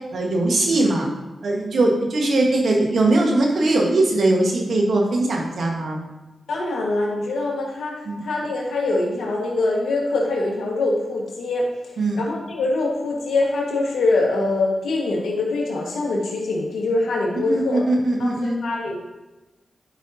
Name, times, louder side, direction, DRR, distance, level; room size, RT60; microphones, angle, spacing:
voice 1, 0.1-1.1 1.4-6.0 8.0-8.2 12.0-12.2 17.5-18.6, right 2 dB, 75° right, 0 dB, 1.5 m, -20 dB
voice 2, 6.5-7.9 8.2-11.6 12.2-17.8 18.2-18.3 18.6-19.0, left 2 dB, 85° left, -2 dB, 1.6 m, -23 dB
11.0 x 5.3 x 2.8 m, 1.1 s
supercardioid pair, 45°, 0 cm